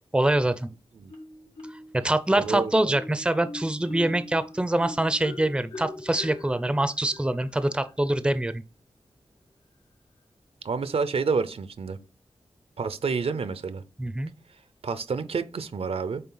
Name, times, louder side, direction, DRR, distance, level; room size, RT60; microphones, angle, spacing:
voice 1, 0.1-0.7 1.9-8.6 14.0-14.3, right 1 dB, 10° right, 0.5 m, -24 dB
Marimba xylophone, 1.1-2.0 2.5-8.0, left 2 dB, 85° left, 1.7 m, -42 dB
voice 2, 2.4-2.9 10.6-12.0 12.8-13.8 14.8-16.2, right 5 dB, 75° right, 0.6 m, -29 dB
8.7 x 3.3 x 3.9 m
wide cardioid pair, 70°, 10 cm